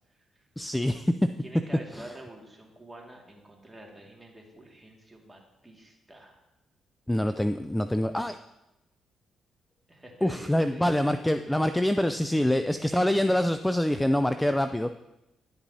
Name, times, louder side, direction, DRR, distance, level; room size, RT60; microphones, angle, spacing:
voice 1, 0.6-1.1 1.9-2.1 7.1-8.4 10.2-14.9, left 1 dB, 10° left, 10 dB, 0.3 m, -25 dB
voice 2, 1.4-6.4 9.9-13.4, right 1 dB, 15° right, 0 dB, 2.0 m, -48 dB
11.0 x 7.2 x 2.7 m, 0.94 s
supercardioid pair, 60°, 0 cm